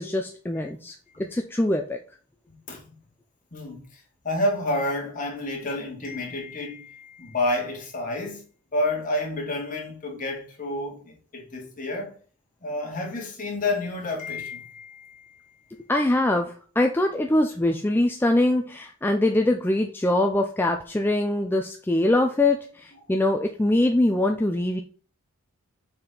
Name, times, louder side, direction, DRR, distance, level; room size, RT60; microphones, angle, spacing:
voice 1, 0.0-1.0 1.3-2.0 15.9-24.8, left 1 dB, 10° left, 0.4 m, -23 dB
voice 2, 3.5-8.4 8.7-12.2 12.6-15.6, left 1 dB, 35° left, 2.0 m, -30 dB
6.4 x 4.3 x 3.8 m
head